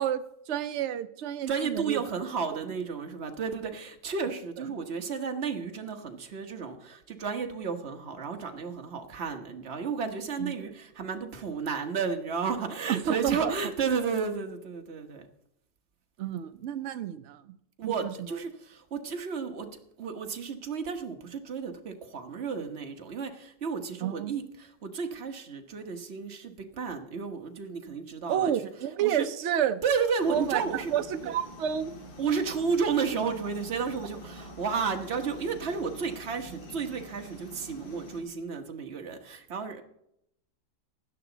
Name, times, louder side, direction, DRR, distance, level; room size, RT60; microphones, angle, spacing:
voice 1, 0.0-2.0 10.4-10.5 12.9-13.5 16.2-17.5 17.8-18.1 24.0-24.4 28.3-29.8 30.3-31.9, right 10 dB, 65° right, 10 dB, 0.7 m, -30 dB
voice 2, 1.5-15.3 17.8-19.7 20.0-28.7 29.0-29.3 29.8-30.9 31.2-31.3 32.2-39.8, right 5 dB, 40° right, 5 dB, 1.3 m, -32 dB
sound 1, 30.2-38.2, equal, 80° left, 2.6 m, -46 dB
16.0 x 11.0 x 4.0 m, 0.76 s
omnidirectional pair, 2.0 m